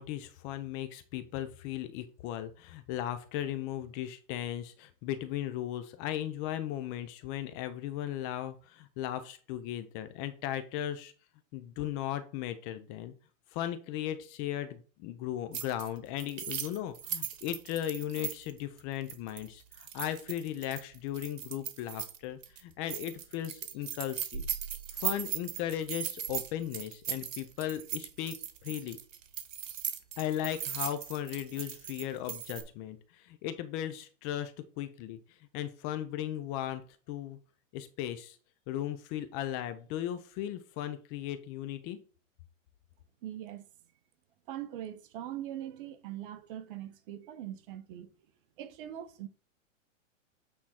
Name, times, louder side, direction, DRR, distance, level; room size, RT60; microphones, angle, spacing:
voice 1, 0.0-11.1 11.5-13.1 13.5-24.5 24.9-28.4 28.6-29.0 30.2-35.2 35.5-36.8 37.1-37.4 37.7-38.4 38.7-42.0, left 12 dB, 30° left, 0.6 m, -37 dB
sound 1, 15.5-15.9 16.2-22.2 22.4-22.6 22.9-32.6, right 8 dB, 75° right, 1.4 m, -38 dB
voice 2, 43.2-43.7 44.5-48.1 48.6-49.3, right 12 dB, 45° right, 1.0 m, -41 dB
8.8 x 3.6 x 4.3 m
hypercardioid pair, 140°, 39 cm